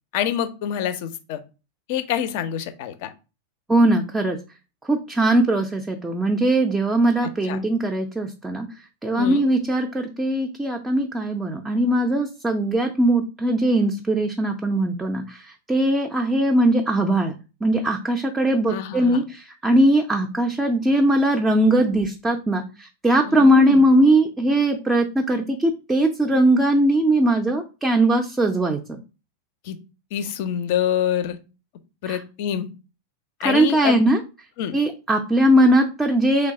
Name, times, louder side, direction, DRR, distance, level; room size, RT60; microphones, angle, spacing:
voice 1, 0.1-1.4 1.9-3.1 7.5-7.6 9.2-9.5 18.7-19.2 23.3-23.9 29.6-29.8 30.1-31.4 32.0-32.7 33.4-34.0 34.6-34.7, left 10 dB, 50° left, 10 dB, 0.4 m, -26 dB
voice 2, 3.7-4.4 4.8-8.7 9.0-29.0 32.1-32.2 33.4-34.2 34.7-36.5, right 1 dB, 10° right, 3 dB, 0.4 m, -20 dB
3.1 x 2.2 x 3.8 m, 0.31 s
figure-of-eight pair, 90°, 0 cm